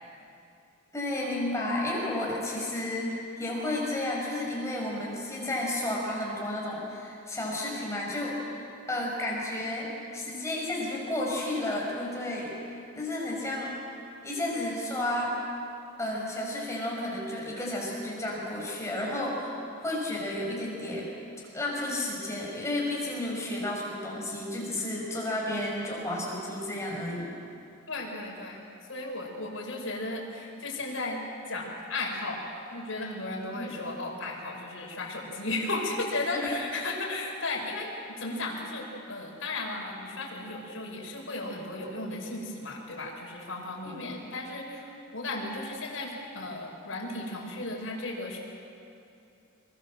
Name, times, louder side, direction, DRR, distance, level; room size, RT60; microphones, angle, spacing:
voice 1, 0.9-12.5 12.9-13.8 14.2-15.4 16.0-21.1 21.5-27.3 33.6-33.7 36.3-36.5 43.8-44.1, left 1 dB, 15° left, -3 dB, 6.1 m, -32 dB
voice 2, 27.9-28.6 28.9-31.2 31.5-48.4, left 2 dB, 70° left, -2 dB, 6.1 m, -35 dB
26.5 x 23.0 x 7.6 m, 2.6 s
head